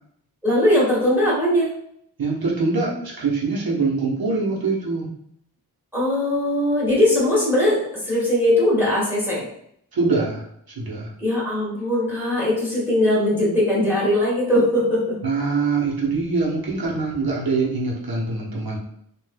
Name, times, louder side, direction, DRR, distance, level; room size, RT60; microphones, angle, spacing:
voice 1, 0.4-1.7 5.9-9.4 11.2-15.0, left 1 dB, 5° right, -7 dB, 1.4 m, -20 dB
voice 2, 2.2-5.1 9.9-10.4 10.7-11.1 15.2-18.8, right 3 dB, 65° right, -3 dB, 1.0 m, -23 dB
3.3 x 2.5 x 2.2 m, 0.70 s
wide cardioid pair, 75°, 39 cm